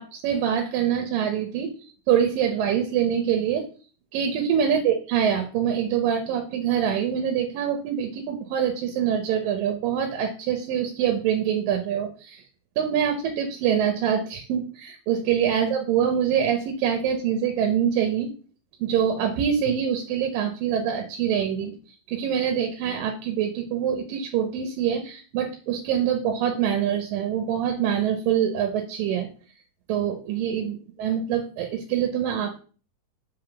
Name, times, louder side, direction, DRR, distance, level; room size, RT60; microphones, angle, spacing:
voice 1, 0.0-1.7 2.1-3.7 4.1-12.4 12.8-18.3 18.8-21.7 22.1-29.3 29.9-32.6, right 8 dB, 75° right, 4 dB, 2.3 m, -25 dB
5.6 x 3.6 x 5.7 m, 0.39 s
omnidirectional pair, 4.3 m